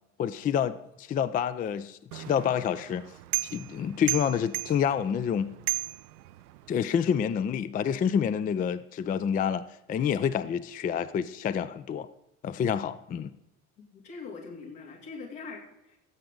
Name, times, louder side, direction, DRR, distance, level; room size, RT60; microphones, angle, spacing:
voice 1, 0.2-3.0 3.5-5.5 6.7-12.1 12.4-13.3, left 8 dB, 20° left, 0.3 m, -28 dB
sound 1, 2.1-6.8, right 20 dB, 80° right, 0.5 m, -36 dB
voice 2, 13.9-16.0, left 4 dB, 75° left, 2.8 m, -42 dB
16.5 x 7.7 x 3.8 m
hypercardioid pair, 60°, 45 cm